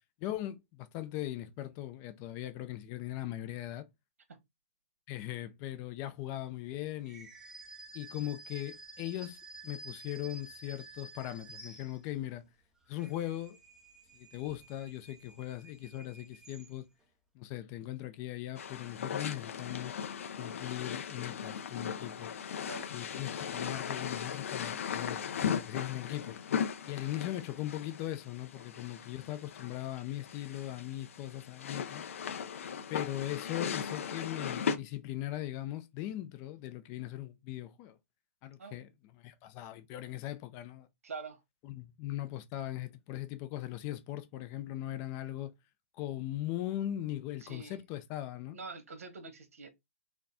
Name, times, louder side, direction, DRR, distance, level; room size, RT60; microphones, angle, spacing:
voice 1, 0.2-3.9 5.1-7.3 7.9-12.4 12.9-13.6 14.1-16.9 17.3-19.9 20.4-22.3 22.9-25.2 25.5-26.4 26.8-32.0 32.9-38.0 38.4-38.9 39.2-40.9 41.6-45.5 46.0-48.6, left 14 dB, 30° left, 0.6 m, -39 dB
sound 1, 7.0-12.3 12.8-17.0, right 2 dB, 5° right, 0.8 m, -52 dB
sound 2, 18.6-34.8, left 7 dB, 70° left, 0.7 m, -38 dB
voice 2, 22.6-22.9 38.6-38.8 41.0-41.4 47.4-47.8 48.5-49.7, right 4 dB, 75° right, 1.5 m, -45 dB
4.3 x 2.3 x 4.2 m
hypercardioid pair, 145°, 8 cm